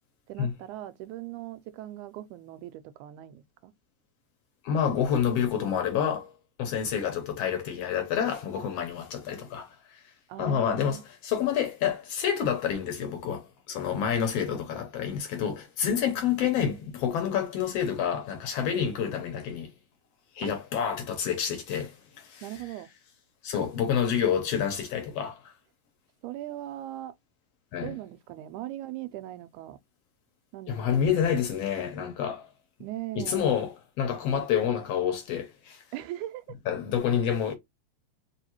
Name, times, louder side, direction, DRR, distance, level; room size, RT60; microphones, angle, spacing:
voice 1, 0.3-3.7 10.3-11.0 15.9-16.0 20.4-20.5 22.4-22.9 26.2-27.1 27.8-29.8 30.5-31.0 32.8-33.5 35.9-36.6, right 14 dB, 85° right, 2.0 m, -39 dB
voice 2, 4.6-6.3 6.6-10.1 10.4-19.7 20.3-22.5 23.4-25.5 27.7-27.9 30.7-32.5 33.2-35.8 36.7-37.6, left 8 dB, 70° left, 1.7 m, -28 dB
4.7 x 2.8 x 2.9 m
omnidirectional pair, 3.4 m